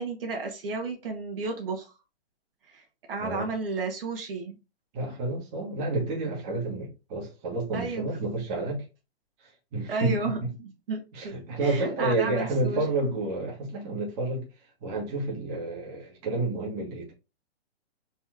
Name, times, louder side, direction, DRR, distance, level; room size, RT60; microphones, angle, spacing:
voice 1, 0.0-1.9 2.7-2.8 3.1-4.6 7.7-8.1 9.9-11.3 11.6-12.8, right 3 dB, 60° right, 1.7 m, -33 dB
voice 2, 3.2-3.5 4.9-8.8 9.4-10.5 11.1-14.5 14.8-17.1, right 2 dB, 25° right, 1.5 m, -30 dB
4.3 x 3.1 x 3.6 m
hypercardioid pair, 155°, 32 cm